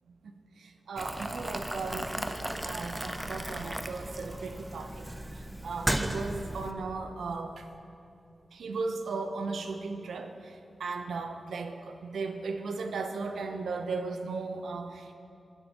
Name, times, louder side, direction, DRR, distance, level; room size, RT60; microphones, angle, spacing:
voice 1, 0.1-5.1 5.3-7.7 8.5-15.1, right 4 dB, 85° right, 7 dB, 0.6 m, -36 dB
Boiling, 1.0-6.7, right 1 dB, 15° right, 0.6 m, -35 dB
16.5 x 7.0 x 2.9 m, 2.5 s
cardioid pair, 40°, 0 cm